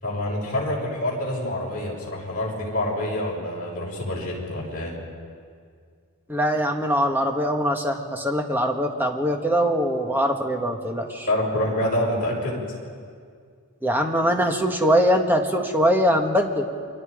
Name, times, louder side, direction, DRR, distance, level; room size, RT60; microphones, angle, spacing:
voice 1, 0.0-5.0 11.3-12.6, left 1 dB, 40° left, -4 dB, 6.3 m, -27 dB
voice 2, 6.3-11.3 13.8-16.7, equal, 10° right, 3 dB, 1.5 m, -22 dB
29.0 x 23.5 x 5.0 m, 2.1 s
head